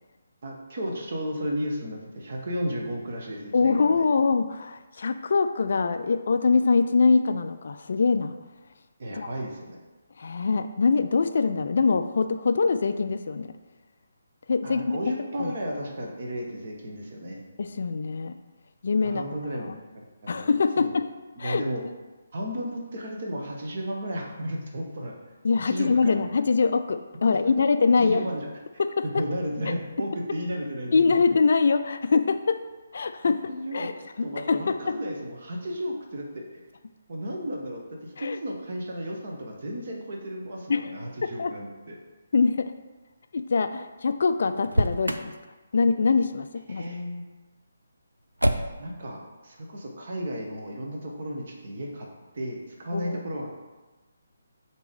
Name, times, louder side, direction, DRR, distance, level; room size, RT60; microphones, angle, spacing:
voice 1, 0.4-4.0 9.0-9.8 14.6-17.4 19.0-20.9 21.4-21.8 22.3-25.1 25.7-26.1 28.0-28.5 29.0-31.2 33.5-33.9 34.2-36.6 37.1-41.9 46.7-47.2 48.8-52.1 52.3-53.5, equal, 45° right, 0 dB, 1.1 m, -34 dB
voice 2, 3.5-8.3 9.1-9.3 10.2-13.5 14.5-15.0 15.4-15.5 17.6-18.3 18.8-19.2 19.7-19.8 20.3-21.0 21.4-21.6 25.4-28.2 28.8-29.2 29.7-29.8 30.9-32.6 32.9-33.4 33.7-33.9 34.4-35.0 38.2-38.4 40.7-40.9 41.4-41.5 42.3-42.7 43.3-45.3 45.7-46.9 52.9-53.2, left 4 dB, 50° left, 9 dB, 0.3 m, -23 dB
Motor vehicle (road), 44.6-45.3 48.4-49.0, right 1 dB, 80° right, 0.4 m, -25 dB
6.8 x 3.0 x 4.8 m, 1.2 s
figure-of-eight pair, 140°, 0 cm